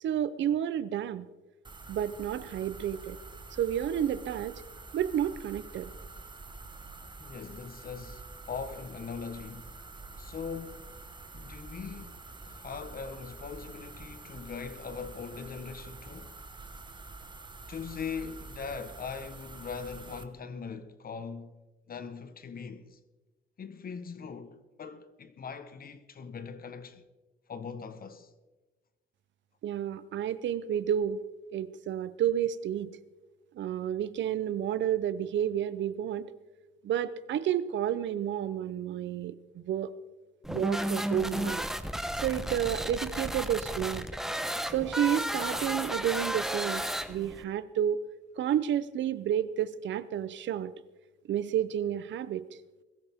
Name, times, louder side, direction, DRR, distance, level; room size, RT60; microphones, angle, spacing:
voice 1, 0.0-1.3 1.9-3.2 3.5-4.6 4.9-5.9 29.6-31.2 31.5-32.9 33.5-36.3 36.8-39.9 40.5-41.6 42.2-44.1 44.7-46.8 47.1-48.0 48.4-50.7 51.3-52.4, right 10 dB, 70° right, 0.7 m, -30 dB
sound 1, 1.6-20.2, right 3 dB, 25° right, 1.2 m, -47 dB
voice 2, 7.2-9.7 10.2-10.9 11.3-12.2 12.5-16.3 17.7-21.6 21.9-23.0 23.6-27.0 27.5-28.3, left 6 dB, 45° left, 1.3 m, -41 dB
sound 2, 40.4-47.4, equal, ahead, 1.0 m, -33 dB
21.5 x 13.5 x 3.6 m
cardioid pair, 90°, 20 cm